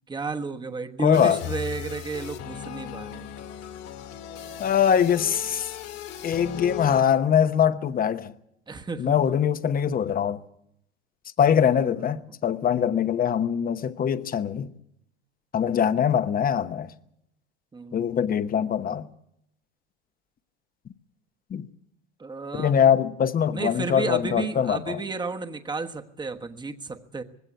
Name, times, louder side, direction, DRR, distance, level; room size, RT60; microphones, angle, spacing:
voice 1, 0.1-3.3 8.7-9.2 11.7-12.1 17.7-18.1 22.2-22.8 23.5-27.2, right 4 dB, 10° right, 1.2 m, -32 dB
voice 2, 1.0-1.4 4.6-5.7 6.2-8.3 9.0-10.4 11.4-14.7 15.5-16.9 17.9-19.1 21.5-21.6 22.5-25.0, left 8 dB, 25° left, 1.0 m, -23 dB
sound 1, 1.1-7.0, left 9 dB, 50° left, 2.1 m, -37 dB
20.0 x 16.5 x 8.3 m
supercardioid pair, 110°, 35 cm